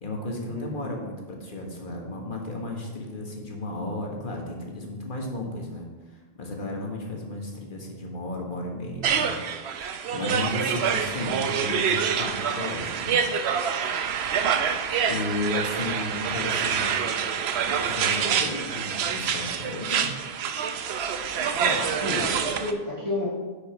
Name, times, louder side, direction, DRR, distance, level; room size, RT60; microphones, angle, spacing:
voice 1, 0.0-9.4 10.1-13.3 15.1-17.1 17.6-20.2, left 2 dB, 50° left, 0 dB, 1.6 m, -34 dB
voice 2, 0.5-0.9 21.6-23.3, left 2 dB, 30° right, -7 dB, 2.1 m, -31 dB
sound 1, 9.0-22.7, right 7 dB, 80° right, 0.9 m, -26 dB
10.0 x 5.3 x 4.5 m, 1.3 s
omnidirectional pair, 1.1 m